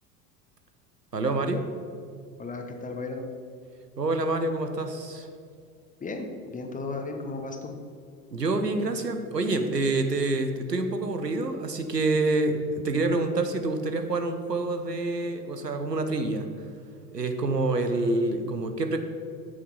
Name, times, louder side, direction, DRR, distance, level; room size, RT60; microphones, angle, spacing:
voice 1, 1.1-1.6 4.0-5.3 8.3-16.5 17.1-19.0, right 2 dB, 90° right, 7 dB, 0.8 m, -27 dB
voice 2, 2.4-3.2 6.0-7.7, left 3 dB, 15° left, 4 dB, 1.2 m, -35 dB
8.0 x 7.8 x 5.5 m, 2.3 s
figure-of-eight pair, 75°, 47 cm